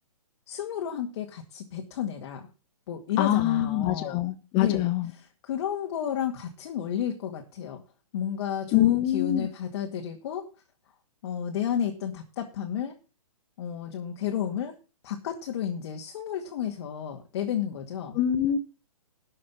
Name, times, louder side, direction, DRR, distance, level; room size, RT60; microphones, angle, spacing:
voice 1, 0.5-2.5 2.9-4.3 4.6-7.8 8.1-10.5 11.2-13.0 13.6-14.7 15.0-18.2, left 9 dB, 45° left, 2.1 m, -32 dB
voice 2, 3.2-5.1 8.7-9.5 18.1-18.6, left 12 dB, 25° left, 1.2 m, -24 dB
12.0 x 6.3 x 7.2 m
hypercardioid pair, 135°, 19 cm